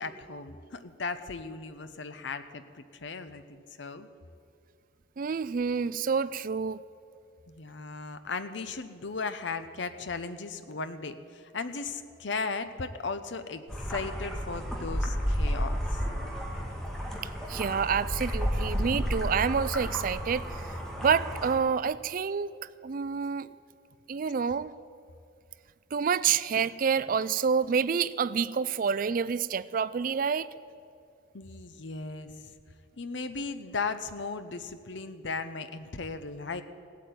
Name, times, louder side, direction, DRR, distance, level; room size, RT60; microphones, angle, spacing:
voice 1, 0.0-4.1 7.5-16.0 31.3-32.5 33.0-36.6, left 4 dB, 65° left, 10 dB, 0.8 m, -37 dB
voice 2, 5.2-6.8 17.5-23.5 24.1-24.7 25.9-30.5, right 6 dB, 45° right, 17 dB, 0.4 m, -28 dB
sound 1, 13.7-21.6, equal, 5° left, 2.1 m, -32 dB
16.5 x 8.5 x 9.4 m, 2.4 s
head